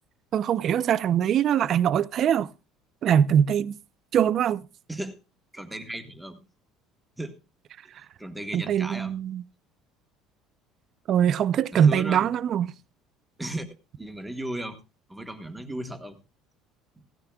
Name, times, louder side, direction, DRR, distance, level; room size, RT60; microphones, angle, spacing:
voice 1, 0.3-2.5 3.0-3.8 4.1-4.6 8.5-9.4 11.1-12.7, right 9 dB, 35° right, 0.5 m, -22 dB
voice 2, 4.9-5.2 5.5-6.4 7.2-7.4 8.2-9.1 11.7-12.3 13.4-13.7 14.0-14.8 15.1-16.2, right 1 dB, 5° right, 1.2 m, -35 dB
17.0 x 13.5 x 2.3 m
cardioid pair, 175°, 0 cm